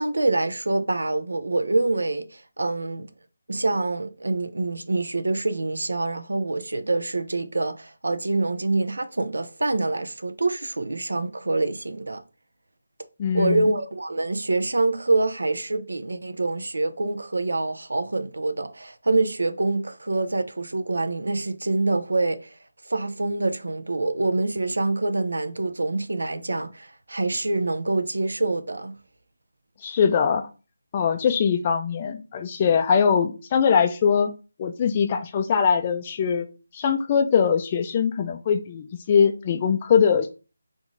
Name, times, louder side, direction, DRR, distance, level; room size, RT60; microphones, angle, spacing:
voice 1, 0.0-3.1 3.5-12.2 13.3-22.6 22.8-28.9, right 2 dB, 90° right, 0.6 m, -26 dB
voice 2, 13.2-13.6 29.8-30.5 30.9-34.3 34.6-36.5 36.7-40.3, left 6 dB, 25° left, 0.3 m, -22 dB
3.6 x 2.6 x 4.7 m
figure-of-eight pair, 165°, 0 cm